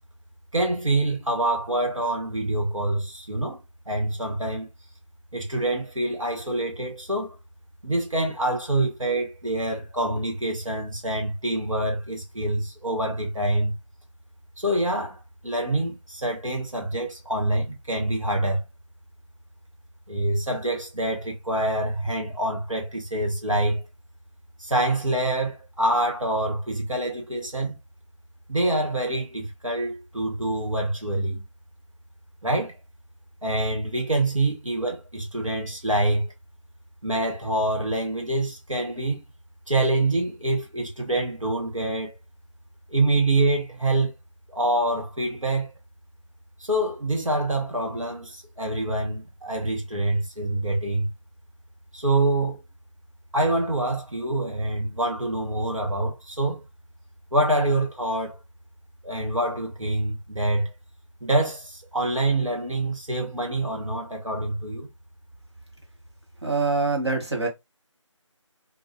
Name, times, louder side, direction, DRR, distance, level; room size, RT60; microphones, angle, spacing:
voice 1, 0.5-3.6 3.9-4.7 5.3-7.4 7.8-13.8 14.6-18.6 20.1-23.8 24.6-27.8 28.5-31.5 32.4-32.7 33.4-36.3 37.0-39.2 39.7-42.1 42.9-44.1 44.5-45.7 46.6-51.1 51.9-52.6 53.3-56.6 57.3-58.4 59.0-60.7 61.2-64.9, right 1 dB, 85° right, 1.1 m, -26 dB
voice 2, 66.4-67.5, right 3 dB, 60° right, 1.2 m, -24 dB
2.5 x 2.3 x 2.6 m
figure-of-eight pair, 165°, 16 cm